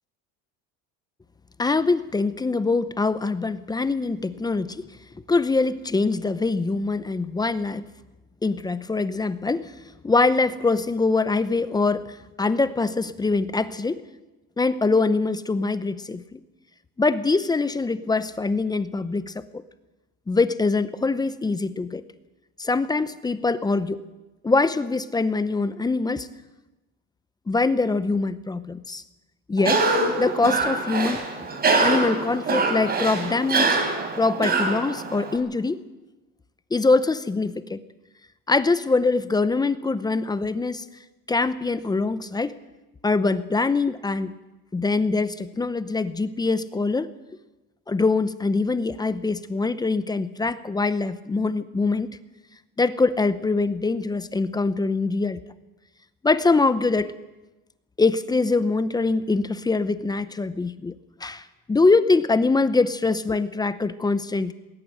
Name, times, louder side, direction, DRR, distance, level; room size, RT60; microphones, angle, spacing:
voice 1, 1.6-4.9 5.3-7.9 8.4-9.7 10.0-14.0 14.6-16.4 17.0-19.6 20.3-22.0 22.6-24.0 24.4-26.3 27.5-29.0 29.5-29.8 30.2-31.2 31.8-33.8 34.2-35.8 36.7-37.8 38.5-40.8 41.3-42.6 43.0-44.3 44.7-47.1 47.9-52.2 52.8-55.4 56.2-57.1 58.0-60.9 61.2-64.5, left 3 dB, 10° left, 14 dB, 0.7 m, -23 dB
Cough, 29.6-35.4, right 3 dB, 30° right, 3.8 m, -24 dB
19.5 x 18.5 x 7.9 m, 1.1 s
cardioid pair, 140°, 32 cm